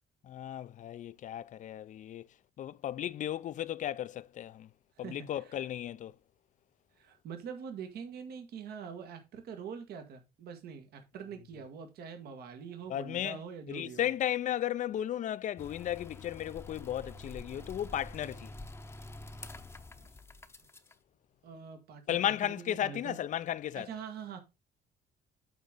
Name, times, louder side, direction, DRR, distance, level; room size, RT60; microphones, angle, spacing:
voice 1, 0.3-2.2 2.6-4.7 5.0-6.1 12.9-13.4 13.7-18.5 22.1-23.9, left 11 dB, 50° left, 0.5 m, -35 dB
voice 2, 5.0-5.6 7.0-14.1 20.0-20.1 21.4-23.2 23.7-24.4, right 6 dB, 70° right, 1.7 m, -44 dB
sound 1, 15.6-20.9, left 2 dB, 15° left, 0.8 m, -47 dB
8.1 x 3.7 x 6.6 m
cardioid pair, 110°, 17 cm